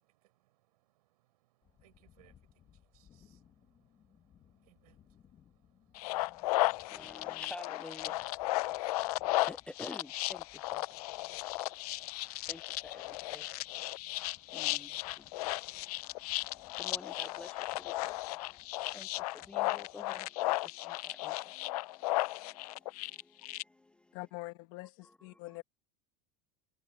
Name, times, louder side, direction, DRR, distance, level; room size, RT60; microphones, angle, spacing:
voice 1, 0.0-6.3, right 18 dB, 90° right, 5.0 m, -71 dB
sound 1, 1.6-20.3, left 9 dB, 25° left, 2.2 m, -66 dB
sound 2, 6.0-23.6, left 19 dB, 80° left, 0.6 m, -35 dB
voice 2, 6.9-11.0 12.5-13.5 14.5-24.2 25.0-25.4, left 2 dB, 5° left, 0.4 m, -52 dB
voice 3, 24.1-25.6, left 21 dB, 50° left, 1.3 m, -44 dB
supercardioid pair, 170°, 19 cm